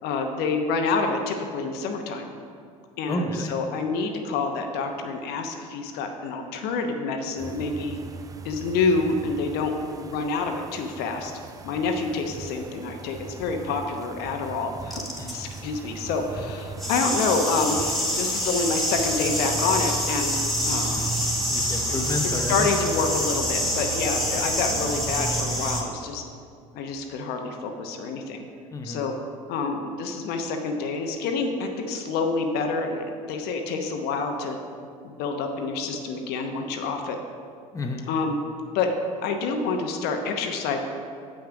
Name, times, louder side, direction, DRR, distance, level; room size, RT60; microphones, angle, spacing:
voice 1, 0.0-2.3 3.0-8.0 8.4-9.7 10.0-11.3 11.6-15.0 15.3-20.4 20.7-21.1 21.9-22.0 22.5-26.2 26.7-28.4 28.8-29.2 29.5-34.6 35.0-37.2 38.1-38.4 38.7-38.9 39.2-40.8, left 4 dB, 60° left, 4 dB, 0.9 m, -27 dB
voice 2, 3.1-3.5 15.2-15.4 21.5-22.7 24.4-24.6 28.7-29.0 37.7-38.1, left 2 dB, 15° left, 3 dB, 0.8 m, -31 dB
sound 1, 7.4-25.8, right 4 dB, 20° right, 0.4 m, -37 dB
sound 2, 14.9-15.6 16.7-25.8, left 1 dB, ahead, 1.8 m, -27 dB
7.5 x 5.8 x 5.0 m, 2.3 s
hypercardioid pair, 80°, 19 cm